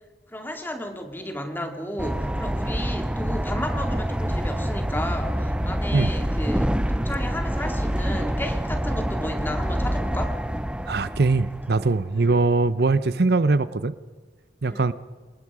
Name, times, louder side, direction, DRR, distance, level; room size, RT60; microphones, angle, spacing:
voice 1, 0.3-10.4 12.1-12.4 14.6-14.9, left 1 dB, 10° left, 5 dB, 2.3 m, -33 dB
sound 1, 2.0-12.2, equal, 5° right, 0.6 m, -26 dB
voice 2, 10.9-13.9 14.6-14.9, right 3 dB, 65° right, 15 dB, 0.7 m, -21 dB
27.0 x 20.0 x 4.9 m, 1.4 s
head